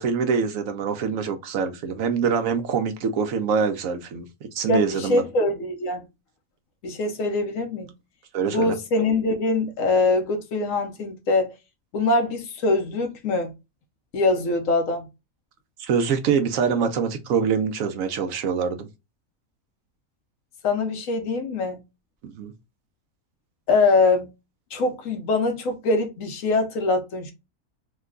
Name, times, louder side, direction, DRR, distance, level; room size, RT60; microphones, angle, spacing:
voice 1, 0.0-5.3 8.3-8.7 15.8-18.9 22.2-22.5, right 6 dB, 70° right, 0.9 m, -24 dB
voice 2, 4.7-6.0 6.8-7.9 8.5-11.5 11.9-13.5 14.1-15.1 20.6-21.8 23.7-24.3 24.7-27.3, left 3 dB, 70° left, 1.1 m, -23 dB
3.0 x 2.2 x 3.5 m
omnidirectional pair, 1.5 m